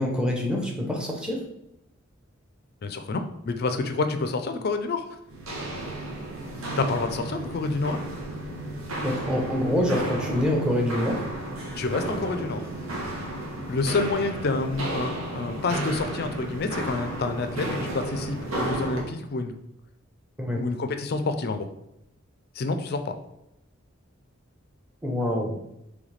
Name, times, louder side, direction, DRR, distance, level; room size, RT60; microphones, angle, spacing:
voice 1, 0.0-1.4 9.0-11.2 20.4-20.7 25.0-25.6, left 1 dB, 5° right, -1 dB, 0.7 m, -26 dB
voice 2, 2.8-5.1 6.8-8.0 11.7-12.6 13.7-19.5 20.5-21.7 22.6-23.2, left 3 dB, 50° left, 8 dB, 0.4 m, -28 dB
Walk footsteps, 5.3-19.1, right 1 dB, 85° right, 1.0 m, -33 dB
3.9 x 3.2 x 3.2 m, 0.85 s
head